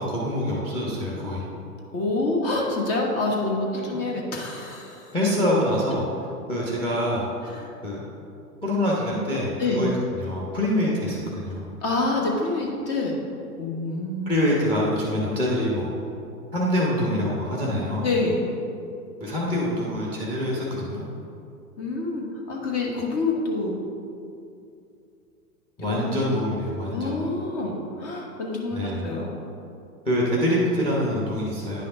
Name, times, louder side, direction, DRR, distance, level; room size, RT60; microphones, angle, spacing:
voice 1, 0.0-1.4 5.1-6.1 6.5-7.3 7.8-8.0 8.6-11.7 14.2-15.9 16.5-18.1 19.2-21.0 25.8-27.2 28.7-29.1 30.0-31.8, left 1 dB, 10° left, -4 dB, 1.2 m, -25 dB
voice 2, 1.9-5.1 7.5-7.7 9.6-9.9 11.8-13.2 13.5-14.3 18.0-18.5 21.8-23.8 25.8-26.2 26.9-29.4, left 2 dB, 30° left, -1 dB, 1.3 m, -27 dB
10.0 x 5.7 x 3.8 m, 2.6 s
hypercardioid pair, 115°, 47 cm